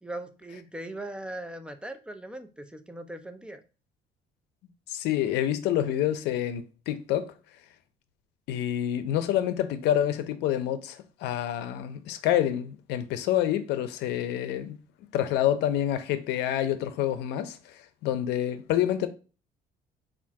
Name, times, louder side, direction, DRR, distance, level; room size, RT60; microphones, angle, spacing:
voice 1, 0.0-3.6, right 1 dB, 5° right, 0.5 m, -39 dB
voice 2, 4.9-7.3 8.5-14.8 15.1-19.1, left 11 dB, 85° left, 0.6 m, -27 dB
3.6 x 2.5 x 4.6 m
cardioid pair, 110°, 17 cm